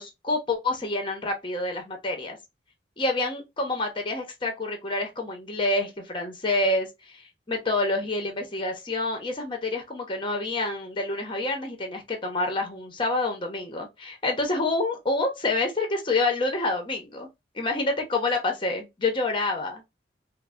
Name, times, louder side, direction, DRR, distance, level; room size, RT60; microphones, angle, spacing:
voice 1, 0.0-2.4 3.0-17.3 17.5-19.8, left 2 dB, 30° left, 0.7 m, -28 dB
3.2 x 2.1 x 2.3 m
head